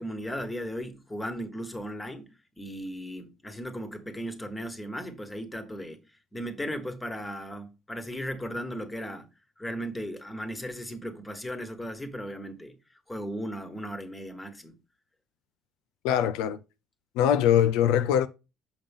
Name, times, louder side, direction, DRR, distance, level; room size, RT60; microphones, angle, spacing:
voice 1, 0.0-2.3 2.6-6.0 6.3-9.2 9.6-12.7 13.1-14.7, equal, 10° left, 1.4 m, -36 dB
voice 2, 16.0-16.6 17.2-18.3, left 10 dB, 90° left, 0.4 m, -22 dB
7.0 x 5.4 x 3.6 m
cardioid pair, 105°, 0 cm